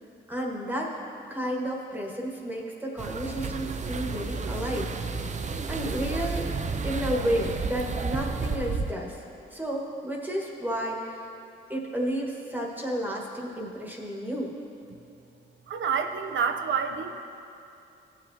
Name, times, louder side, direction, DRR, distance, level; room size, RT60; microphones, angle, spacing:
voice 1, 0.3-0.9 1.3-4.9 5.7-6.5 6.8-9.2 9.5-11.3 11.7-14.5, equal, 10° right, -2 dB, 1.5 m, -31 dB
sound 1, 3.0-8.9, right 4 dB, 35° right, 0.5 m, -31 dB
voice 2, 15.7-17.2, right 6 dB, 70° right, 5 dB, 0.7 m, -28 dB
15.5 x 7.2 x 2.7 m, 2.7 s
cardioid pair, 85°, 20 cm